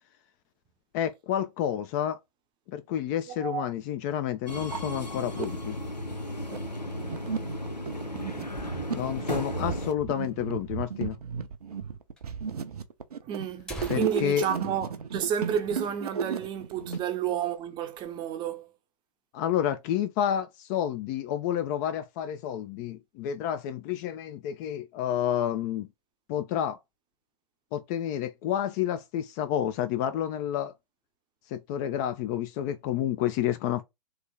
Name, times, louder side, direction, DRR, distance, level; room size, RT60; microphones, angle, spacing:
voice 1, 0.9-2.2 2.7-5.8 8.9-11.2 13.9-14.5 19.3-25.9 26.3-26.8 27.7-30.7 31.5-33.8, left 10 dB, 30° left, 0.4 m, -30 dB
voice 2, 3.3-3.7 13.2-18.7, right 8 dB, 20° right, 0.6 m, -31 dB
sound 1, 3.3-3.4 4.1-4.2 4.5-5.5 6.1-17.0, right 6 dB, 70° right, 0.6 m, -34 dB
Subway metro underground, 4.5-9.9, left 1 dB, 90° left, 0.8 m, -35 dB
sound 2, 10.7-10.8 11.7-11.8 12.2-12.3 13.0-13.1 13.4-16.0 16.4-16.5 16.9-17.2 17.6-18.2, right 1 dB, 5° left, 0.9 m, -46 dB
3.2 x 2.9 x 3.5 m
figure-of-eight pair, 105°, 21 cm